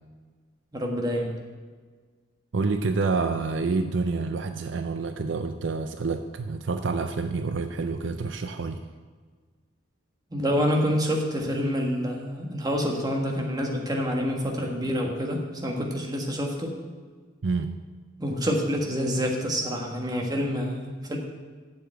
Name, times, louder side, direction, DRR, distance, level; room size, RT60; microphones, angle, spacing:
voice 1, 0.7-1.3 10.3-16.8 18.2-21.2, equal, 20° right, 0 dB, 1.5 m, -27 dB
voice 2, 2.5-8.8 17.4-17.8, right 4 dB, 65° right, 8 dB, 0.5 m, -28 dB
7.8 x 6.9 x 8.0 m, 1.5 s
head